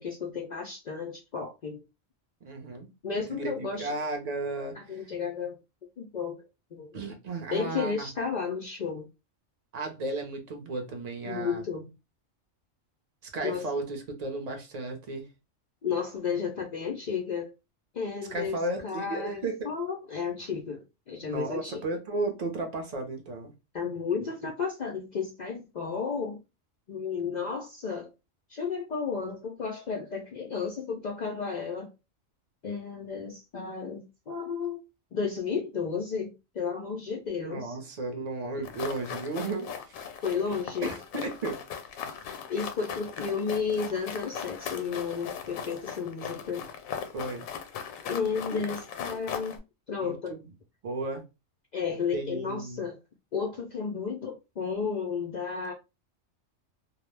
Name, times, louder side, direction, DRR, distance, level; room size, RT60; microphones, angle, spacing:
voice 1, 0.0-1.8 3.0-3.9 4.7-5.6 6.0-6.4 6.7-7.0 7.5-9.1 11.2-11.9 13.4-13.6 15.8-17.5 17.9-21.8 23.7-26.4 26.9-28.1 28.5-31.9 32.6-34.8 35.1-37.8 40.2-40.9 42.5-46.6 48.1-49.6 49.9-50.3 51.7-53.0 53.3-55.7, left 5 dB, 70° left, 0.4 m, -33 dB
voice 2, 2.4-2.9 3.3-4.7 6.9-8.1 9.7-11.6 13.3-15.3 18.3-19.7 21.2-23.5 37.4-40.0 40.8-41.6 47.1-47.5 48.5-48.6 50.0-50.4 50.8-51.2 52.1-52.8, right 2 dB, 45° right, 0.5 m, -34 dB
sound 1, 38.6-49.6, left 8 dB, 85° left, 1.0 m, -39 dB
2.3 x 2.0 x 3.1 m
omnidirectional pair, 1.4 m